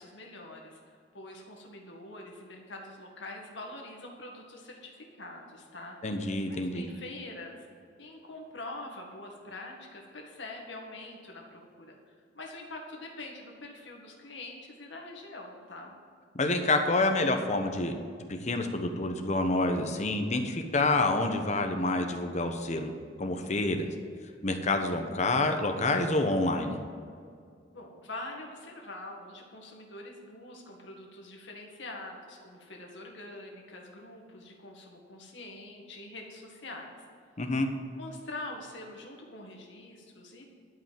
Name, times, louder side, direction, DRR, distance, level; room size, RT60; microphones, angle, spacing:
voice 1, 0.0-7.6 8.0-12.0 12.3-16.0 27.7-37.0 38.0-40.4, left 2 dB, 80° left, 0 dB, 2.0 m, -44 dB
voice 2, 6.0-6.8 16.3-17.9 18.3-22.9 23.2-23.9 24.4-26.8 37.4-37.7, left 2 dB, 40° left, 5 dB, 1.1 m, -28 dB
12.0 x 5.5 x 7.6 m, 2.3 s
head